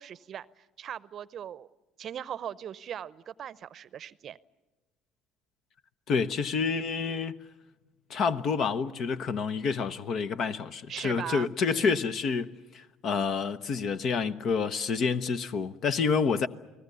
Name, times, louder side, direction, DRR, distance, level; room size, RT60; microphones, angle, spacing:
voice 1, 0.0-1.7 2.0-4.4 10.9-12.0, right 9 dB, 50° right, 0.7 m, -39 dB
voice 2, 6.1-7.4 8.1-16.5, left 5 dB, 55° left, 1.0 m, -28 dB
29.5 x 19.5 x 6.9 m
hypercardioid pair, 70°, 0 cm